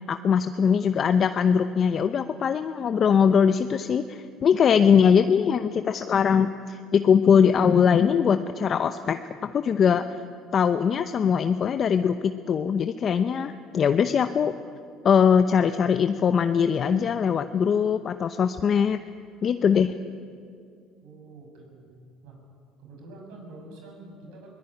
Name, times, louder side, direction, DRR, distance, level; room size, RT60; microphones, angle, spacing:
voice 1, 0.1-10.0 10.5-14.5 15.0-19.0 19.4-19.9, left 7 dB, 40° left, 9 dB, 0.8 m, -21 dB
voice 2, 21.0-22.4 22.8-24.5, right 2 dB, 80° right, 2 dB, 6.9 m, -46 dB
22.0 x 18.5 x 10.0 m, 2.3 s
cardioid pair, 110°, 0 cm